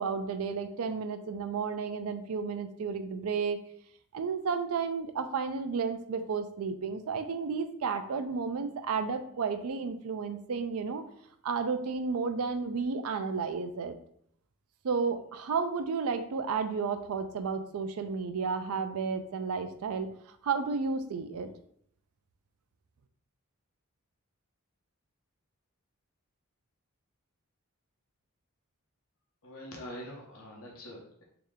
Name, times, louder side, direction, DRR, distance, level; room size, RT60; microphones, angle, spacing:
voice 1, 0.0-3.6 4.1-11.0 11.4-14.0 14.8-20.1 20.4-21.5, right 5 dB, 80° right, 8 dB, 0.4 m, -32 dB
voice 2, 29.4-31.2, equal, 80° left, -1 dB, 0.9 m, -44 dB
3.2 x 2.9 x 3.6 m, 0.67 s
head